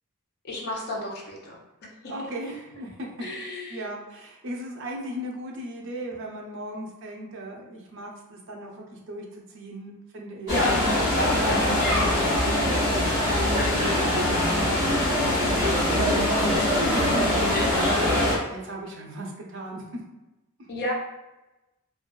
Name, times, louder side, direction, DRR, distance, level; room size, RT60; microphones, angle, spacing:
voice 1, 0.4-1.6 3.2-3.9 10.5-10.8 11.2-11.9 20.7-20.9, left 1 dB, 50° left, -2 dB, 0.5 m, -31 dB
voice 2, 2.1-3.1 3.7-10.6 11.4-11.9 12.3-14.5 15.3-19.8, right 1 dB, 60° right, -1 dB, 0.5 m, -37 dB
sound 1, 10.5-18.4, left 1 dB, 35° right, 1.3 m, -23 dB
2.6 x 2.2 x 2.2 m, 1.0 s
head